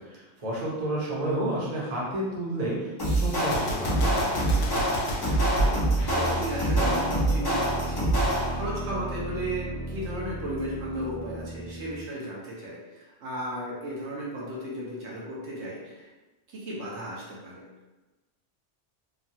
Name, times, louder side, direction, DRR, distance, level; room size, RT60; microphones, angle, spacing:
voice 1, 0.1-4.3, right 1 dB, 40° right, -6 dB, 0.8 m, -31 dB
sound 1, 3.0-8.7, right 1 dB, 25° left, 0.6 m, -25 dB
Gunshot gunfire, 3.4-6.5, equal, 70° left, 0.8 m, -34 dB
voice 2, 5.4-16.1 16.5-17.7, right 1 dB, 75° right, -5 dB, 1.0 m, -35 dB
sound 2, 5.9-12.1, right 1 dB, 90° left, 1.1 m, -35 dB
3.1 x 2.2 x 2.7 m, 1.1 s
omnidirectional pair, 1.2 m